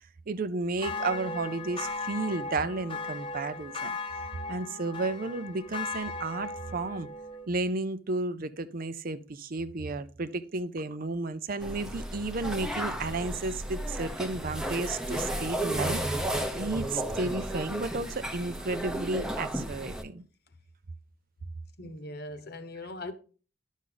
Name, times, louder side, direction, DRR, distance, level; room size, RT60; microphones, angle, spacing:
voice 1, 0.3-4.0 4.5-7.1 7.5-16.0 16.6-20.2, right 3 dB, 50° right, 0.6 m, -32 dB
sound 1, 0.8-7.5, left 3 dB, 25° left, 0.8 m, -37 dB
sound 2, 11.6-20.0, right 1 dB, 5° right, 0.8 m, -33 dB
voice 2, 21.8-23.1, left 1 dB, 55° left, 1.1 m, -40 dB
10.5 x 6.2 x 3.9 m
head